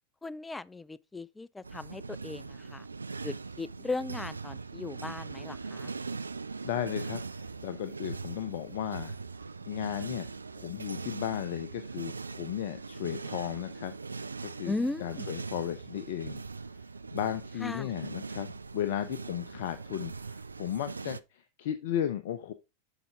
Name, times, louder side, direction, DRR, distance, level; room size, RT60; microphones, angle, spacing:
voice 1, 0.2-2.8 3.2-5.9 14.7-15.3 17.6-17.9, left 3 dB, 10° left, 0.4 m, -37 dB
sound 1, 1.6-21.2, right 4 dB, 80° right, 0.3 m, -41 dB
voice 2, 6.6-9.2 9.6-10.3 10.5-13.9 14.6-14.7 15.0-16.4 17.1-22.5, left 10 dB, 55° left, 0.6 m, -35 dB
7.9 x 5.8 x 3.7 m
figure-of-eight pair, 90°, 0 cm